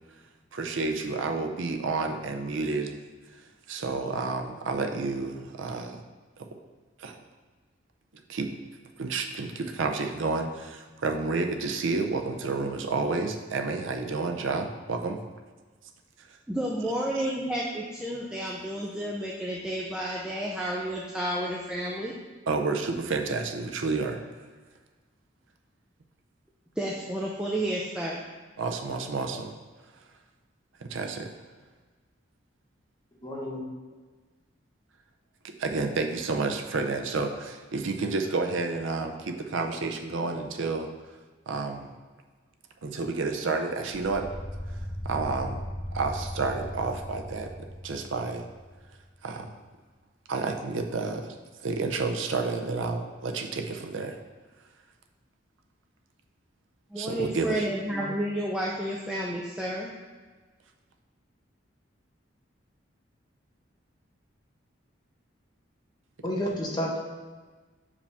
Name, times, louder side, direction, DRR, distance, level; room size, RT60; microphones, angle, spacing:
voice 1, 0.5-2.9 3.7-6.0 7.0-7.2 8.3-8.5 9.0-15.2 17.3-17.4 22.5-24.2 28.6-29.5 30.8-31.3 35.6-40.9 41.5-41.9 42.8-44.3 45.0-45.6 45.9-47.5 47.8-48.4 49.2-49.5 50.3-51.3 51.6-54.2 57.0-57.6, right 3 dB, 75° right, 4 dB, 0.6 m, -30 dB
voice 2, 16.5-22.1 26.8-28.2 56.9-59.9, right 1 dB, 5° right, -4 dB, 0.5 m, -31 dB
voice 3, 33.2-33.6 57.9-58.1 66.2-67.0, equal, 20° left, -3 dB, 1.1 m, -31 dB
sound 1, 43.9-49.1, equal, 80° left, 1.4 m, -38 dB
6.8 x 4.9 x 3.5 m, 1.4 s
head